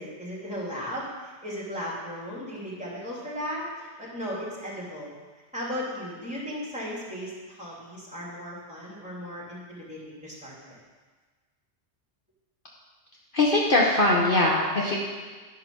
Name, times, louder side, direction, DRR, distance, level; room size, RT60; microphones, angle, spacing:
voice 1, 0.0-5.1 5.5-10.8, equal, 5° right, -7 dB, 3.0 m, -36 dB
voice 2, 13.3-15.0, left 2 dB, 50° left, -3 dB, 1.3 m, -21 dB
10.5 x 5.8 x 6.1 m, 1.4 s
omnidirectional pair, 1.2 m